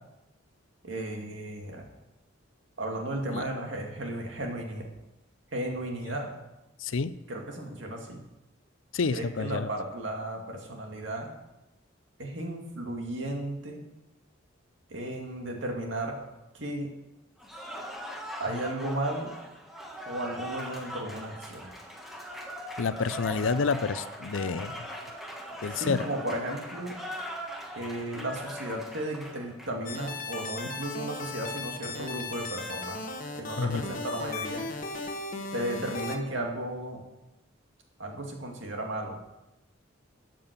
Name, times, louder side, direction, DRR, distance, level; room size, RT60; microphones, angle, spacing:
voice 1, 0.8-1.8 2.8-4.9 5.5-6.3 7.3-8.2 9.1-11.3 12.2-13.8 14.9-16.1 16.5-16.9 18.4-19.3 20.1-21.7 25.7-27.0 27.8-33.0 33.3-34.6 35.5-37.0 38.0-39.2, right 1 dB, 65° right, 2 dB, 2.4 m, -34 dB
voice 2, 6.8-7.2 8.9-9.7 22.8-24.9 25.6-26.0 33.6-33.8, left 4 dB, 75° left, 15 dB, 0.6 m, -29 dB
Cheering / Applause, 17.4-30.0, equal, ahead, 1.5 m, -41 dB
sound 1, 29.9-36.2, left 3 dB, 45° left, 1.3 m, -37 dB
12.5 x 7.6 x 6.8 m, 0.96 s
head